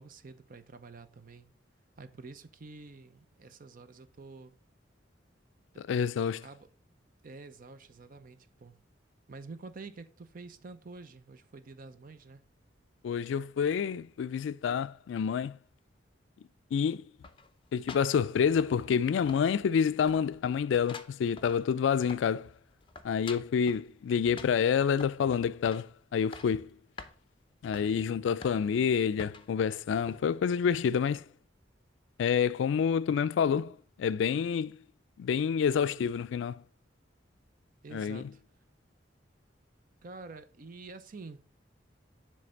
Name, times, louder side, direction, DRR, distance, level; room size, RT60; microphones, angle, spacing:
voice 1, 0.0-1.5 2.0-4.5 5.7-5.8 6.4-6.7 7.2-8.8 9.3-12.4 37.8-38.4 40.0-41.4, right 3 dB, 45° right, 0.6 m, -48 dB
voice 2, 5.9-6.4 13.0-15.6 16.7-17.0 17.7-22.5 23.0-26.7 27.6-31.3 32.2-34.8 35.2-36.6 37.9-38.2, left 7 dB, 70° left, 0.3 m, -28 dB
sound 1, 17.2-19.0 19.3-19.8 20.1-22.4 22.7-23.9 24.4-25.2 25.6-25.9 26.2-26.6 27.0-27.1 27.7-27.9 28.4-28.8 29.2-29.5 30.1-30.2, left 4 dB, 30° left, 0.6 m, -47 dB
7.7 x 3.2 x 5.1 m
head